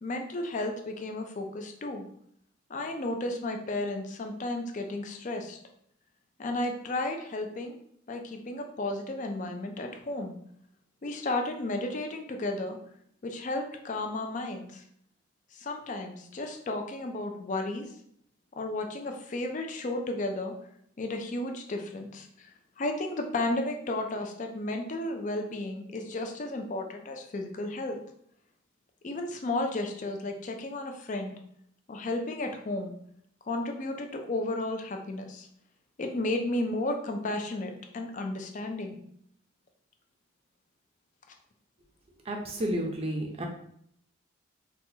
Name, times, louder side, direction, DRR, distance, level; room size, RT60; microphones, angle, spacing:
voice 1, 0.0-2.1 2.7-5.6 6.4-7.8 8.1-10.3 11.0-12.8 13.2-14.8 15.5-17.9 18.6-20.6 21.0-28.0 29.0-31.4 31.9-33.0 33.5-35.5 36.0-39.0, left 2 dB, 40° left, 4 dB, 0.4 m, -33 dB
voice 2, 42.3-43.4, right 1 dB, 30° right, 1 dB, 0.5 m, -31 dB
4.0 x 2.2 x 2.7 m, 0.69 s
head